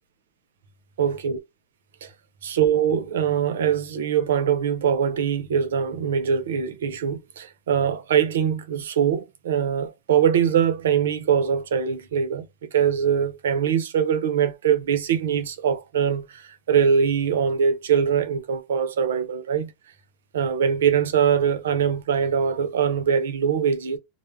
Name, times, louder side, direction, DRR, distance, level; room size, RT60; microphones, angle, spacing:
voice 1, 1.0-1.4 2.0-2.1 2.4-12.5 12.7-19.7 20.3-24.0, right 7 dB, 85° right, 0.6 m, -22 dB
2.2 x 2.0 x 3.3 m
hypercardioid pair, 115°, 0 cm